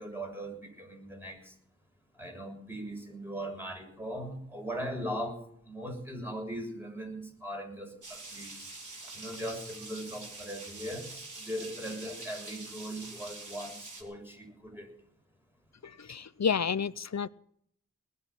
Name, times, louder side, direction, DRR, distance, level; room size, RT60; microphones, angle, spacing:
voice 1, 0.0-1.5 2.2-8.7 9.1-14.9, equal, 5° right, 2 dB, 6.7 m, -39 dB
sound 1, 8.0-14.0, right 2 dB, 75° right, 4.0 m, -45 dB
voice 2, 15.8-17.3, left 6 dB, 60° left, 17 dB, 0.7 m, -30 dB
20.0 x 6.7 x 9.8 m, 0.65 s
cardioid pair, 45°, 30 cm